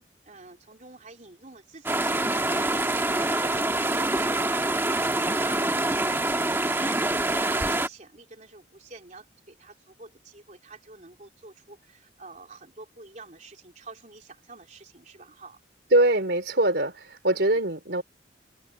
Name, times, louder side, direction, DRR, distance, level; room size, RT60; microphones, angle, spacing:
voice 1, 0.0-15.6 17.3-17.6, right 3 dB, 40° right, 3.4 m, -47 dB
sound 1, 1.8-7.9, right 2 dB, 15° right, 1.3 m, -25 dB
voice 2, 15.9-18.0, right 1 dB, 65° right, 3.7 m, -23 dB
head